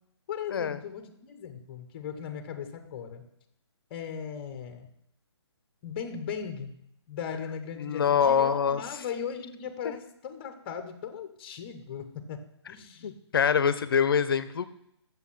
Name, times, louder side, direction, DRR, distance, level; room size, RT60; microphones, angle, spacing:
voice 1, 0.3-3.2 3.9-4.9 5.8-6.7 7.1-12.4 12.7-13.2, left 7 dB, 20° left, 8 dB, 0.8 m, -38 dB
voice 2, 7.8-8.8 13.0-14.7, left 7 dB, 55° left, 13 dB, 0.7 m, -25 dB
8.1 x 7.0 x 5.7 m, 0.75 s
hypercardioid pair, 165°, 15 cm